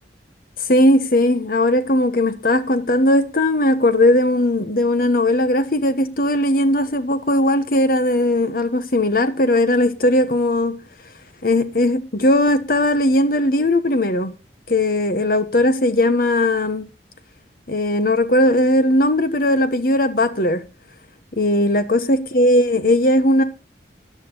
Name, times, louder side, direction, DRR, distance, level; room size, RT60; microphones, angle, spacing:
voice 1, 0.7-10.8 11.4-14.3 14.7-16.8 17.7-20.6 21.4-23.4, left 1 dB, 55° left, 1.3 m, -18 dB
14.0 x 9.8 x 3.9 m
head